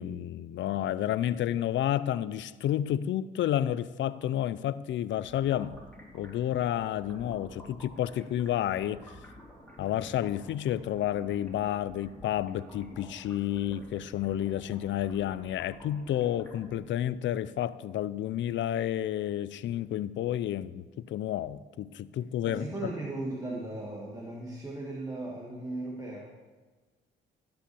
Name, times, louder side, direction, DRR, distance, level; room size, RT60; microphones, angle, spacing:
voice 1, 0.0-5.8 6.1-9.2 9.8-22.9, left 11 dB, 70° left, 17 dB, 0.5 m, -30 dB
sound 1, 5.2-16.8, equal, 5° left, 3.4 m, -51 dB
voice 2, 22.5-26.3, right 2 dB, 15° right, -2 dB, 1.9 m, -37 dB
15.5 x 5.7 x 7.0 m, 1.3 s
cardioid pair, 90°, 20 cm